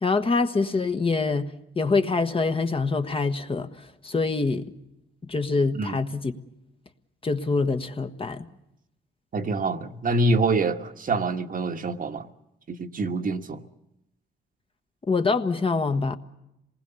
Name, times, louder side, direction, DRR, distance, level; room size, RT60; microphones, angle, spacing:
voice 1, 0.0-1.5 1.7-4.7 5.2-6.3 7.2-8.4 15.1-16.2, left 4 dB, 25° left, 1.3 m, -25 dB
voice 2, 9.3-12.3 12.7-13.6, right 2 dB, 45° right, 1.4 m, -26 dB
27.0 x 19.5 x 6.9 m
cardioid pair, 90°, 20 cm